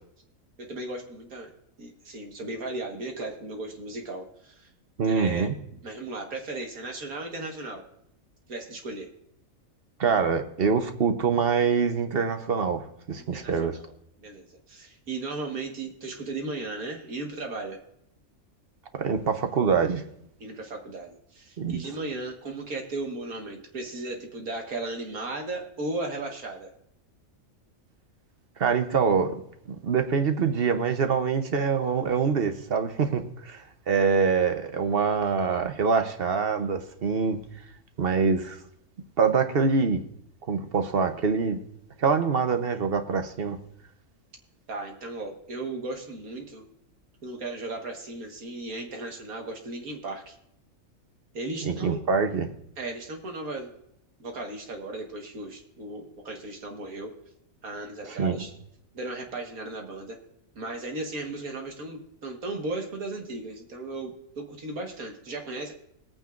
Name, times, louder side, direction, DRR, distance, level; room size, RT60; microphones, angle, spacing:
voice 1, 0.6-1.5 1.8-4.7 5.0-5.5 5.8-7.8 8.5-9.1 13.2-13.5 14.2-17.8 20.4-26.7 44.7-46.7 47.2-50.4 51.3-52.0 52.8-53.7 54.2-57.1 57.6-58.5 58.9-60.2 60.6-65.7, right 2 dB, 85° right, 2 dB, 2.1 m, -36 dB
voice 2, 5.0-5.5 10.0-13.8 19.0-20.0 21.6-21.8 28.6-29.3 29.7-37.4 38.0-38.6 39.2-40.0 40.5-41.6 42.0-43.6 51.6-52.5 58.0-58.4, right 5 dB, 50° right, 7 dB, 1.0 m, -25 dB
21.0 x 8.9 x 2.5 m, 0.75 s
omnidirectional pair, 1.5 m